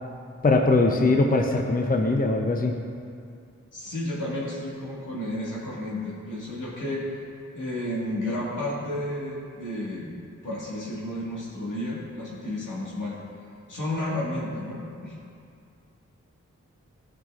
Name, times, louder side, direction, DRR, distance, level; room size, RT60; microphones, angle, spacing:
voice 1, 0.4-2.8, left 2 dB, 30° left, 3 dB, 0.7 m, -21 dB
voice 2, 3.7-7.3 7.6-10.2 10.4-13.2 13.7-15.2, left 1 dB, 80° left, -6 dB, 1.9 m, -32 dB
13.0 x 5.8 x 2.5 m, 2.4 s
cardioid pair, 40°, 30 cm